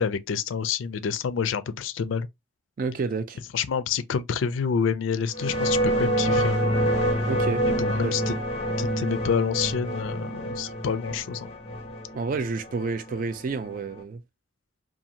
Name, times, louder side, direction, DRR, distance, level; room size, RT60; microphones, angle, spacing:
voice 1, 0.0-2.3 3.5-6.6 7.7-8.3 8.8-11.5, left 6 dB, 75° left, 0.4 m, -28 dB
voice 2, 2.8-3.4 7.3-8.2 12.1-14.2, right 4 dB, 45° right, 0.3 m, -30 dB
sound 1, 5.3-14.0, right 1 dB, 30° left, 0.6 m, -27 dB
2.6 x 2.4 x 2.7 m
head